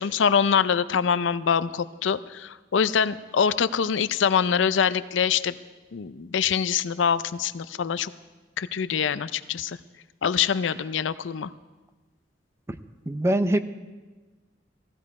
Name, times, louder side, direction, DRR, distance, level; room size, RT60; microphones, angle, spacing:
voice 1, 0.0-5.5 5.9-8.1 8.6-9.8 10.2-11.5, left 7 dB, 75° left, 15 dB, 0.5 m, -24 dB
voice 2, 13.1-13.6, right 1 dB, 15° right, 10 dB, 0.6 m, -23 dB
16.0 x 15.0 x 4.8 m, 1.2 s
head